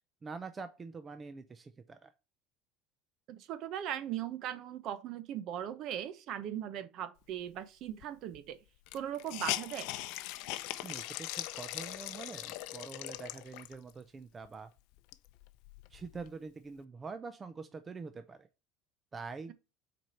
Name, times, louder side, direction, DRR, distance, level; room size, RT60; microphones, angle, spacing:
voice 1, 0.2-2.1 10.8-14.7 15.9-18.5 19.1-19.5, right 4 dB, 15° right, 0.4 m, -45 dB
voice 2, 3.3-8.6 8.9-9.9, right 10 dB, 45° right, 0.8 m, -39 dB
Hiss, 8.0-8.1 8.3-8.4 8.9-13.9 14.5-14.6 14.9-16.3, left 16 dB, 65° left, 0.6 m, -40 dB
6.1 x 4.4 x 5.6 m
cardioid pair, 165°, 0 cm